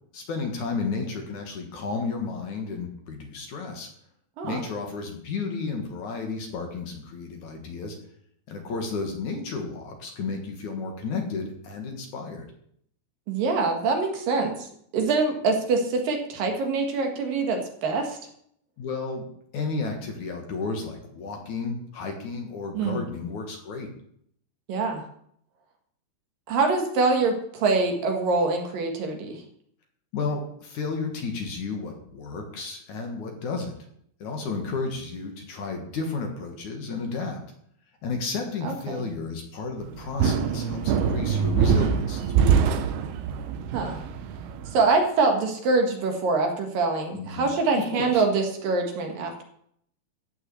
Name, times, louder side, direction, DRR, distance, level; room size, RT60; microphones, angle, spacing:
voice 1, 0.1-3.9 4.4-8.0 8.5-12.5 18.8-19.3 19.5-23.9 30.1-33.7 34.2-37.4 38.0-42.7 47.1-47.5 47.7-48.2, left 4 dB, 55° left, 3 dB, 2.9 m, -32 dB
voice 2, 13.3-14.7 14.9-18.2 22.7-23.0 24.7-25.0 26.5-29.4 38.6-39.0 43.7-44.0 44.7-49.4, right 3 dB, 65° right, 3 dB, 3.2 m, -24 dB
sound 1, 39.9-44.8, right 7 dB, 80° right, 2.9 m, -24 dB
14.5 x 6.2 x 8.3 m, 0.68 s
omnidirectional pair, 4.5 m